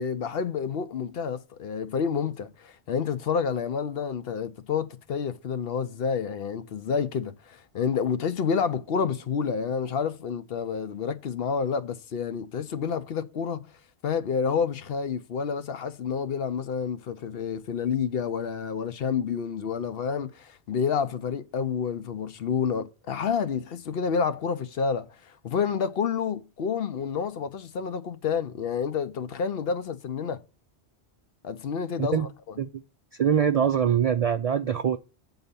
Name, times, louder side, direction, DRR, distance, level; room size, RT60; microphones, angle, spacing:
voice 1, 0.0-13.6 14.0-30.4 31.4-32.3, left 6 dB, 65° left, 0.9 m, -29 dB
voice 2, 33.1-35.0, right 8 dB, 60° right, 0.3 m, -23 dB
7.8 x 4.0 x 6.8 m
omnidirectional pair, 1.1 m